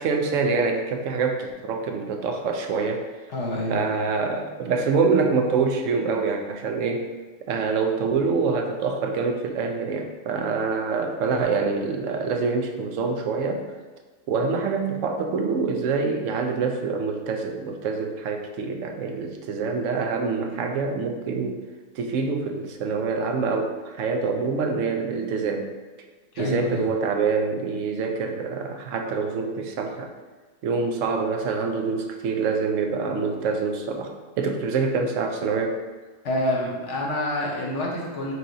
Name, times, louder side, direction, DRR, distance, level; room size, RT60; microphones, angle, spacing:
voice 1, 0.0-3.1 3.7-7.1 7.5-13.6 14.3-21.6 22.0-25.7 26.4-30.1 30.6-35.8, right 4 dB, 80° right, 4 dB, 0.9 m, -25 dB
voice 2, 3.3-4.0 26.3-26.9 36.2-38.3, left 1 dB, 70° left, -2 dB, 1.2 m, -27 dB
4.7 x 2.9 x 3.8 m, 1.3 s
omnidirectional pair, 1.3 m